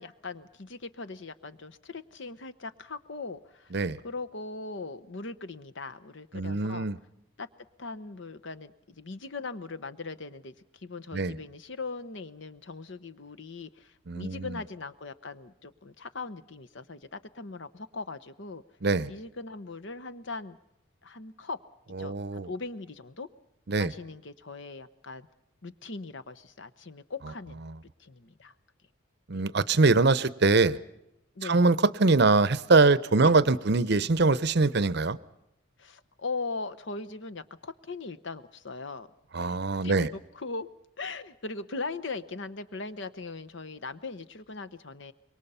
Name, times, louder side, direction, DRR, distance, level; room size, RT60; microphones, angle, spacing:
voice 1, 0.0-3.7 4.0-6.9 7.4-7.5 7.8-18.6 19.1-20.6 21.0-21.6 22.0-23.3 23.8-25.3 25.6-27.6 28.0-28.5 29.3-29.4 31.3-31.6 33.2-33.4 35.8-39.1 39.4-40.7 41.0-45.1, left 3 dB, 60° left, 0.9 m, -40 dB
voice 2, 6.3-7.0 11.1-11.4 14.1-14.5 18.8-19.1 22.0-22.5 23.7-23.9 29.3-30.8 31.4-35.2 39.3-40.1, right 3 dB, 55° right, 0.7 m, -23 dB
26.0 x 22.5 x 5.6 m
head